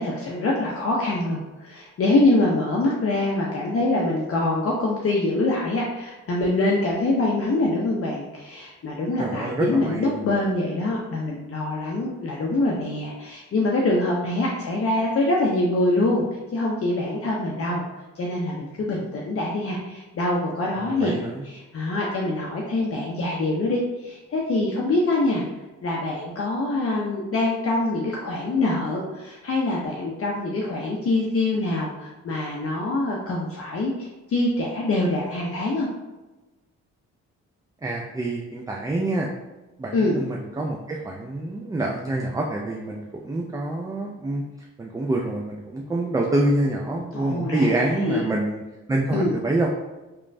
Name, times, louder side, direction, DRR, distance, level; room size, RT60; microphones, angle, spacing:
voice 1, 0.0-16.2 16.5-17.8 18.2-21.2 21.4-25.4 25.8-35.9 39.9-40.2 47.1-48.2 49.1-49.3, left 2 dB, 45° left, -3 dB, 0.5 m, -24 dB
voice 2, 9.2-10.1 20.8-21.4 37.8-39.3 39.8-44.4 44.8-48.6 48.9-49.7, right 2 dB, 10° right, -1 dB, 0.3 m, -26 dB
3.1 x 2.1 x 2.5 m, 1.1 s
supercardioid pair, 50°, 34 cm